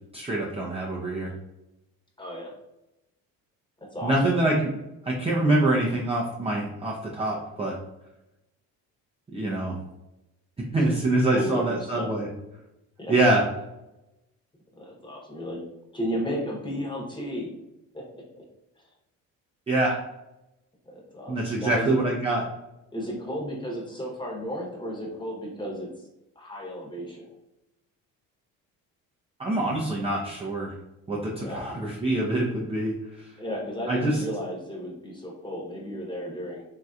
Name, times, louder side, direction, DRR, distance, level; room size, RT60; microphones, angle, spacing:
voice 1, 0.1-1.3 4.0-4.7 5.0-7.8 9.3-9.8 10.7-12.3 13.1-13.4 19.7-20.0 21.3-22.4 29.4-30.8 31.1-33.3 33.9-34.2, right 2 dB, 15° right, -4 dB, 0.5 m, -25 dB
voice 2, 2.2-2.5 3.8-4.1 10.8-12.1 13.0-13.1 14.8-15.6 15.9-17.5 17.9-18.4 20.9-22.0 22.9-25.9 26.4-27.3 31.4-31.8 33.4-36.6, equal, 10° left, -2 dB, 1.0 m, -34 dB
3.1 x 2.7 x 2.4 m, 0.93 s
supercardioid pair, 80°, 38 cm